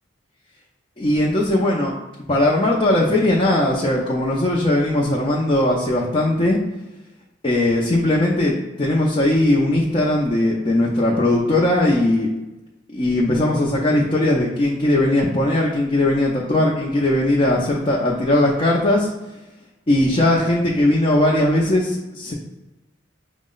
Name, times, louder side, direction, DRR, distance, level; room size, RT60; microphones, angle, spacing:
voice 1, 1.0-1.9 2.3-6.6 7.4-12.3 12.9-19.1 19.9-22.3, left 1 dB, 30° left, -4 dB, 0.6 m, -19 dB
5.8 x 2.1 x 3.8 m, 1.0 s
head